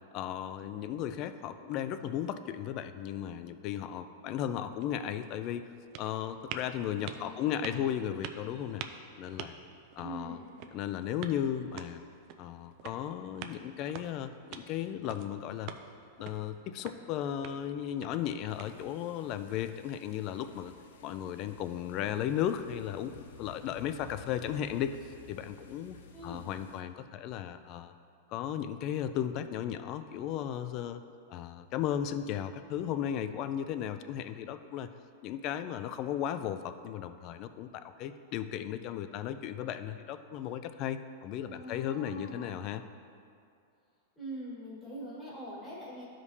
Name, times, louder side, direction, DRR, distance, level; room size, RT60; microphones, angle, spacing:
voice 1, 0.1-5.6 6.0-8.8 9.2-9.6 10.0-10.4 10.7-12.0 12.4-15.7 16.2-20.7 21.0-26.0 26.2-27.9 28.3-31.0 31.3-34.9 35.2-42.8, left 10 dB, 35° left, 10 dB, 0.3 m, -35 dB
sound 1, 4.8-19.2, right 8 dB, 40° right, 0.4 m, -48 dB
voice 2, 7.0-7.9 10.0-10.4 26.1-26.4 41.4-42.5 44.1-46.0, right 1 dB, 15° left, -9 dB, 1.6 m, -43 dB
sound 2, 18.5-26.8, left 4 dB, 75° left, 0.6 m, -54 dB
12.5 x 5.1 x 2.8 m, 2.4 s
supercardioid pair, 160°, 0 cm